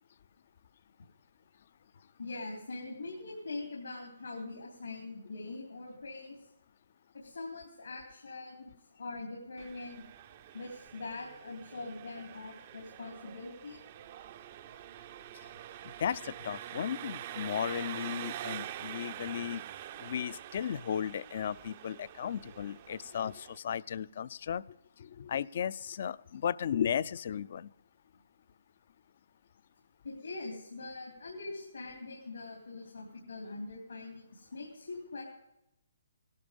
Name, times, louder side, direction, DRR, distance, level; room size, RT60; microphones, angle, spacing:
voice 1, 2.2-6.5 7.1-10.0 10.5-13.8 30.0-35.2, left 3 dB, 85° left, -1 dB, 3.5 m, -43 dB
Engine, 9.6-23.6, right 11 dB, 40° right, 0.6 m, -45 dB
voice 2, 16.0-19.6 20.0-24.6 25.0-27.7, left 8 dB, 55° left, 20 dB, 0.4 m, -35 dB
16.5 x 12.0 x 5.3 m, 0.86 s
hypercardioid pair, 150°, 0 cm